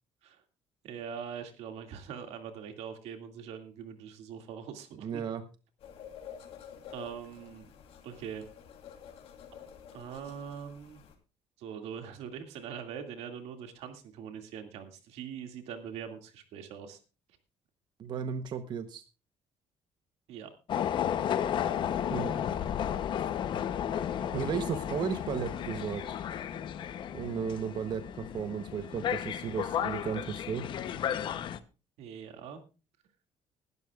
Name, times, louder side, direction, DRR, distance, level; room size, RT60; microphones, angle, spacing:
voice 1, 0.8-5.2 6.9-7.7 8.0-8.4 9.9-11.0 11.6-17.0 20.3-20.5 32.0-32.6, right 7 dB, 85° right, 6 dB, 2.2 m, -42 dB
voice 2, 5.0-5.4 18.0-19.0 22.1-22.4 24.3-26.2 27.1-30.7, right 7 dB, 45° right, 9 dB, 0.9 m, -34 dB
sound 1, 5.8-11.1, left 8 dB, 65° left, 3.1 m, -50 dB
sound 2, 20.7-31.6, left 9 dB, 50° left, 0.8 m, -33 dB
20.5 x 12.0 x 2.4 m, 0.32 s
cardioid pair, 160°, 11 cm